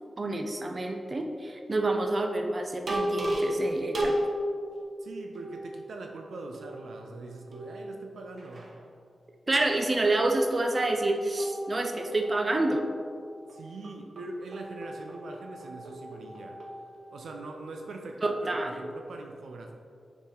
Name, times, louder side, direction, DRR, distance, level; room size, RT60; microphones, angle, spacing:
voice 1, 0.2-4.1 9.5-12.8 18.2-18.7, right 2 dB, 40° right, 3 dB, 0.7 m, -28 dB
sound 1, 2.9-4.8 5.3-6.1 6.5-7.2 7.5-8.8 10.1-10.9 11.4-17.6, equal, 55° right, 1.1 m, -36 dB
voice 2, 5.0-8.7 13.5-16.6 17.1-19.7, right 2 dB, 85° right, 2 dB, 0.5 m, -42 dB
6.9 x 4.7 x 3.8 m, 2.3 s
cardioid pair, 70°, 0 cm